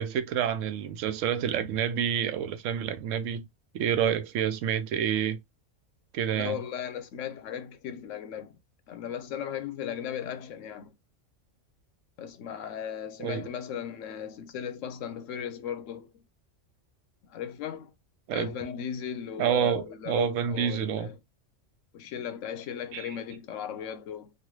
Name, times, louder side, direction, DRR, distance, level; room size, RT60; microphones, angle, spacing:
voice 1, 0.0-3.4 3.7-5.4 6.1-6.6 13.2-13.5 18.3-18.5 19.4-21.1 22.9-23.2, right 9 dB, 90° right, 1.0 m, -28 dB
voice 2, 6.3-8.6 8.9-11.0 12.2-16.2 17.2-17.9 18.3-21.2 21.9-24.3, left 8 dB, 80° left, 1.0 m, -36 dB
3.3 x 2.3 x 3.0 m
omnidirectional pair, 1.3 m